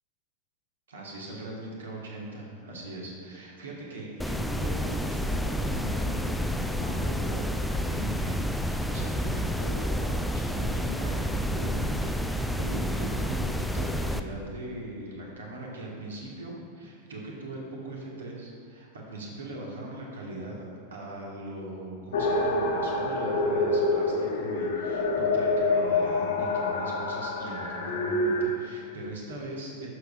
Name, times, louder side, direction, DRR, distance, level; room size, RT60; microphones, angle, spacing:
voice 1, 0.9-20.6 20.9-29.9, right 1 dB, 65° right, -2 dB, 1.7 m, -40 dB
sound 1, 4.2-14.2, equal, ahead, 0.3 m, -29 dB
sound 2, 22.1-28.4, left 2 dB, 60° left, 1.2 m, -27 dB
11.5 x 6.8 x 2.5 m, 2.3 s
figure-of-eight pair, 90°, 0 cm